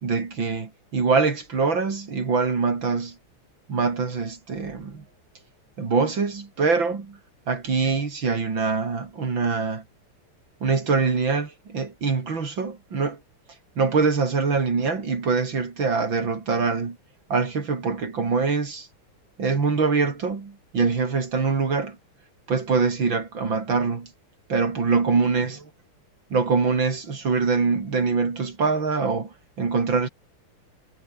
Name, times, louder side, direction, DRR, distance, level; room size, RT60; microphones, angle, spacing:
voice 1, 0.0-3.2 3.7-5.0 5.8-7.2 7.5-9.8 10.6-13.2 13.8-17.0 17.3-18.9 19.4-22.0 22.5-24.1 24.5-25.6 26.3-30.1, right 4 dB, 60° right, 3.8 m, -24 dB
omnidirectional pair, 2.4 m